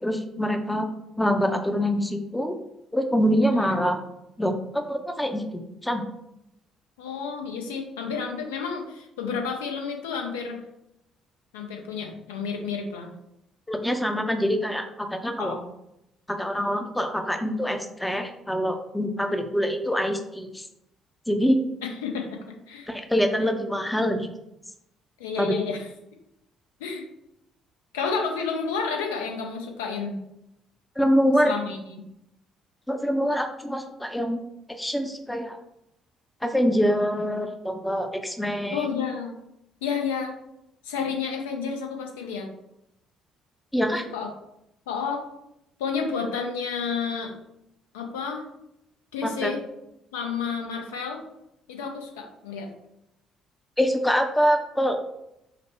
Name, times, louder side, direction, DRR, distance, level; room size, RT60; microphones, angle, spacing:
voice 1, 0.0-0.9 1.2-2.5 2.9-4.0 4.4-6.0 13.7-14.8 15.1-15.6 16.3-20.7 21.3-21.6 22.9-24.3 25.4-25.6 31.0-31.5 32.9-34.4 34.8-35.6 36.4-38.9 43.7-44.0 49.2-49.5 53.8-55.0, equal, 5° left, 6 dB, 0.5 m, -25 dB
voice 2, 7.0-10.6 11.5-13.1 15.4-15.6 21.8-22.9 25.2-25.9 26.8-27.0 27.9-30.2 31.4-32.0 38.7-39.4 39.8-40.3 40.8-42.5 44.1-44.3 44.9-45.2 45.8-47.3 47.9-48.4 49.1-49.6 50.1-51.2 51.7-52.7, left 5 dB, 70° left, 2 dB, 0.5 m, -30 dB
4.9 x 2.1 x 3.3 m, 0.83 s
figure-of-eight pair, 45°, 0 cm